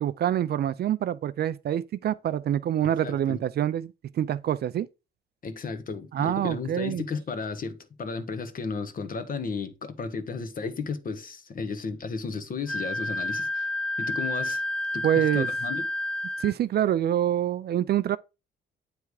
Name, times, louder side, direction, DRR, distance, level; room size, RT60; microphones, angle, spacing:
voice 1, 0.0-4.9 6.1-7.0 15.0-15.5 16.4-18.2, right 11 dB, 55° right, 0.4 m, -26 dB
voice 2, 3.0-3.4 5.4-13.7 14.0-14.6 14.9-15.8, left 5 dB, 45° left, 1.1 m, -34 dB
Wind instrument woodwind instrument, 12.7-16.5, left 1 dB, 5° left, 0.5 m, -30 dB
8.2 x 3.4 x 4.8 m
cardioid pair, 90°, 20 cm